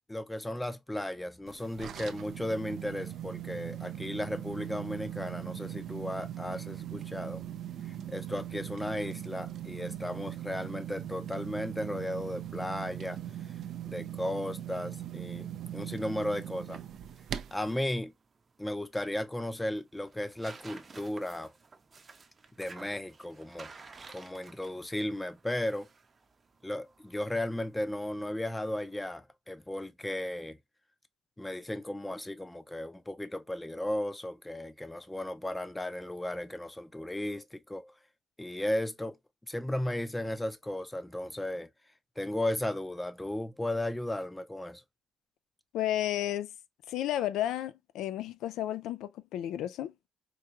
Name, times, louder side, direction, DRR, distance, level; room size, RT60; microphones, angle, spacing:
voice 1, 0.1-7.4 7.9-13.2 13.9-16.8 17.5-18.1 18.6-21.5 22.6-23.7 24.1-25.9 26.6-30.6 31.4-37.9 38.4-39.2 39.5-41.7 42.2-44.8, left 1 dB, 10° left, 0.5 m, -35 dB
sound 1, 1.5-17.8, right 11 dB, 65° right, 0.4 m, -40 dB
sound 2, 16.9-29.2, right 4 dB, 35° right, 0.7 m, -54 dB
voice 2, 45.7-46.5 46.9-49.9, left 12 dB, 85° left, 0.3 m, -32 dB
4.5 x 2.3 x 2.8 m
cardioid pair, 90°, 0 cm